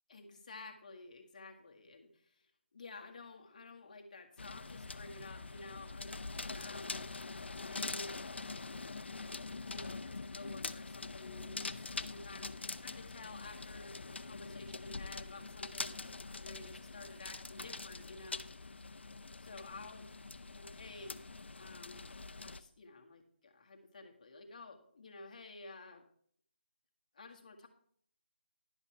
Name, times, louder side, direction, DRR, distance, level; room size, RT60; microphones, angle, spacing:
voice 1, 0.1-6.1 6.5-7.1 7.6-8.1 9.6-15.9 16.4-18.4 19.4-20.1 20.5-21.3 21.5-22.1 22.4-26.0 27.1-27.7, left 3 dB, 40° left, 2 dB, 1.7 m, -52 dB
sound 1, 4.4-22.6, left 3 dB, 80° left, 0.7 m, -44 dB
11.5 x 5.7 x 5.8 m, 0.62 s
figure-of-eight pair, 170°, 6 cm